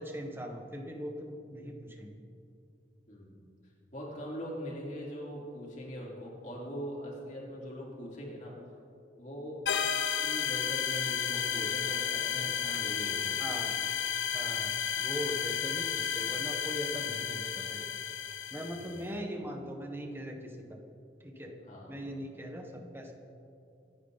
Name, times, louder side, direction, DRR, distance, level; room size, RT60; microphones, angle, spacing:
voice 1, 0.0-2.2 13.4-13.8 14.3-17.8 18.5-20.8 21.2-21.6 21.9-23.1, equal, 10° right, 3 dB, 1.3 m, -40 dB
voice 2, 3.1-3.4 3.9-8.5 9.2-9.9 10.2-13.3 18.7-19.1 21.7-22.0, equal, 45° left, -4 dB, 3.8 m, -41 dB
sound 1, 9.7-19.0, left 8 dB, 85° left, 0.8 m, -32 dB
26.0 x 9.5 x 4.1 m, 2.7 s
head